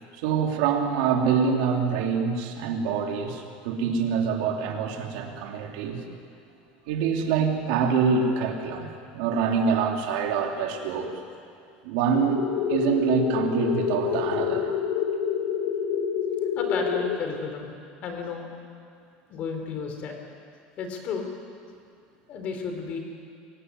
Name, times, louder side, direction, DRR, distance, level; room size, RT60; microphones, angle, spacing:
voice 1, 0.2-6.0 6.9-11.1 11.8-12.4 12.7-14.8, right 6 dB, 70° right, 2 dB, 3.2 m, -25 dB
sound 1, 12.1-17.2, left 8 dB, 90° left, 2.7 m, -27 dB
voice 2, 16.6-17.7 18.0-18.5 19.3-20.1 20.8-21.2 22.3-23.0, left 5 dB, 35° left, 4 dB, 4.0 m, -32 dB
24.5 x 16.5 x 9.8 m, 2.3 s
cardioid pair, 170°, 4 cm